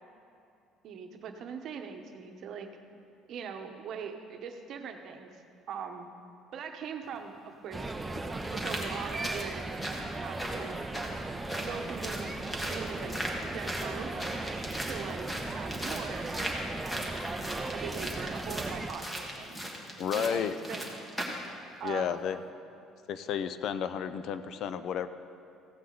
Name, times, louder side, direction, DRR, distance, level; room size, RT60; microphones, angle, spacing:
voice 1, 0.8-2.7 3.3-5.4 5.7-6.1 6.5-7.9 8.5-10.8 11.6-13.1 13.4-14.3 14.8-17.2 17.7-19.7 20.1-21.1 21.8-22.2, right 6 dB, 55° right, 5 dB, 0.9 m, -41 dB
sound 1, 7.0-7.1 7.9-21.5 21.9-22.0, equal, 10° left, 1.3 m, -38 dB
sound 2, 7.7-18.9, right 2 dB, 15° right, 0.5 m, -37 dB
voice 2, 20.0-20.5 21.8-22.4 23.1-25.1, left 8 dB, 55° left, 12 dB, 0.4 m, -32 dB
15.5 x 8.3 x 3.9 m, 2.6 s
cardioid pair, 140°, 0 cm